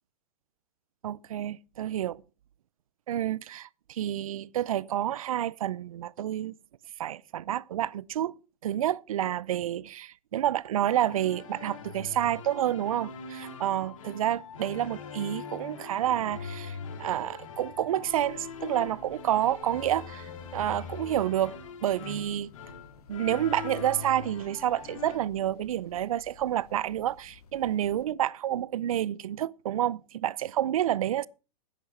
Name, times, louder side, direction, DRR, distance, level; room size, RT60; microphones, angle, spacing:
voice 1, 1.0-2.2 3.1-6.5 7.0-8.3 8.6-22.5 23.1-31.3, right 11 dB, 60° right, 0.6 m, -29 dB
sound 1, 10.9-25.2, left 5 dB, 55° left, 2.7 m, -42 dB
sound 2, 18.0-28.0, left 7 dB, 70° left, 2.3 m, -57 dB
11.0 x 9.5 x 5.8 m
hypercardioid pair, 175°, 20 cm